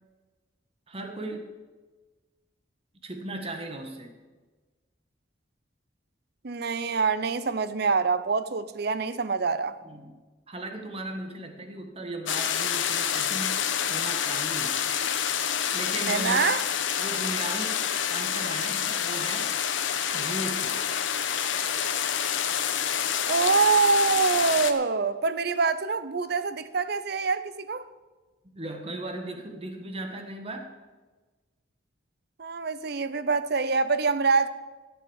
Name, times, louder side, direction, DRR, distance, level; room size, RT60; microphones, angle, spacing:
voice 1, 0.9-1.5 3.0-4.1 9.8-10.2 10.5-14.8 15.7-16.5 17.0-17.8 18.1-19.5 20.1-20.7 28.4-30.7, right 2 dB, 30° right, 1.5 m, -37 dB
voice 2, 6.4-9.7 16.1-16.6 23.3-27.9 32.4-34.5, right 4 dB, 55° right, 0.7 m, -25 dB
sound 1, 12.3-24.7, left 8 dB, 80° left, 1.0 m, -28 dB
14.0 x 7.9 x 7.2 m
head